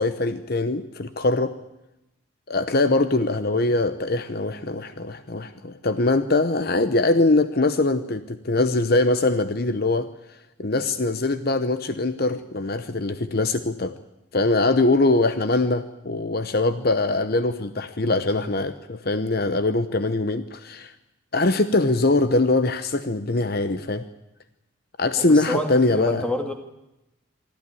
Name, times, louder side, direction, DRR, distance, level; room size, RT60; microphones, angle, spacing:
voice 1, 0.0-1.5 2.5-10.1 10.6-13.9 14.3-20.9 21.3-24.0 25.0-26.3, left 2 dB, 50° left, 11 dB, 0.9 m, -22 dB
voice 2, 25.2-26.5, left 1 dB, 5° left, 4 dB, 2.4 m, -28 dB
24.5 x 14.0 x 9.8 m, 0.93 s
head